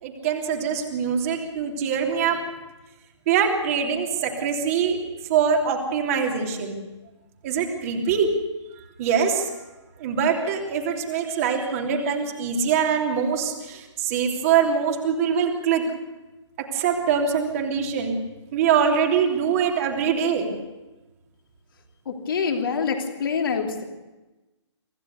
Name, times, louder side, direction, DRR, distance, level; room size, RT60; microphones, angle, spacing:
voice 1, 0.0-2.4 3.3-5.0 5.3-6.7 7.4-8.3 9.0-9.5 10.0-15.8 16.6-18.2 18.5-20.6, right 7 dB, 30° right, 1 dB, 3.2 m, -23 dB
voice 2, 22.1-23.8, left 5 dB, 45° left, 3 dB, 2.9 m, -26 dB
25.5 x 15.5 x 6.9 m, 1.1 s
figure-of-eight pair, 135°, 15 cm